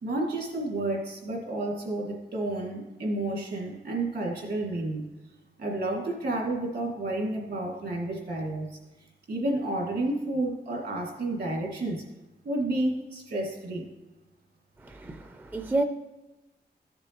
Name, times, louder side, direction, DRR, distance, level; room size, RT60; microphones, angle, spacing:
voice 1, 0.0-5.1 5.6-8.7 9.3-12.0 12.4-13.9, right 2 dB, 70° right, 0 dB, 2.1 m, -30 dB
voice 2, 14.8-15.8, right 2 dB, 10° right, 7 dB, 0.4 m, -30 dB
14.0 x 6.9 x 2.9 m, 1.1 s
wide cardioid pair, 170°, 18 cm